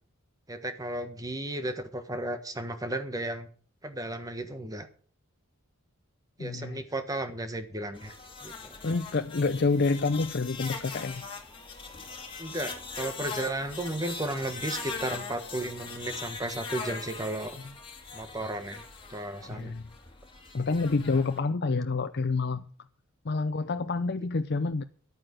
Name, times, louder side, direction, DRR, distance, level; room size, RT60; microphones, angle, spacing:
voice 1, 0.5-3.5 3.8-4.9 6.4-8.1 8.4-8.8 12.4-17.6 18.1-18.8 19.1-19.7, right 1 dB, 15° right, 1.3 m, -34 dB
voice 2, 6.4-6.8 8.8-11.2 19.5-19.8 20.5-22.7 23.2-24.8, left 3 dB, 50° left, 0.6 m, -28 dB
sound 1, 7.9-21.4, left 4 dB, 25° left, 2.4 m, -41 dB
11.0 x 9.0 x 7.7 m
head